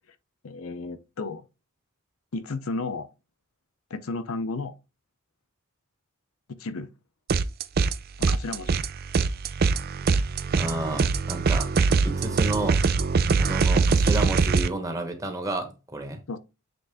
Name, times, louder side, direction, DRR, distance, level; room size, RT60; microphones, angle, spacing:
voice 1, 0.4-1.5 2.3-3.1 3.9-4.7 6.6-6.9 8.2-8.8 13.9-14.0 16.3-16.4, left 3 dB, 70° left, 0.6 m, -33 dB
sound 1, 7.3-7.9 8.2-14.7, right 4 dB, 45° right, 0.4 m, -23 dB
voice 2, 10.5-11.7 12.0-12.8 13.4-16.2, right 2 dB, 15° right, 1.1 m, -31 dB
7.8 x 3.8 x 3.4 m
head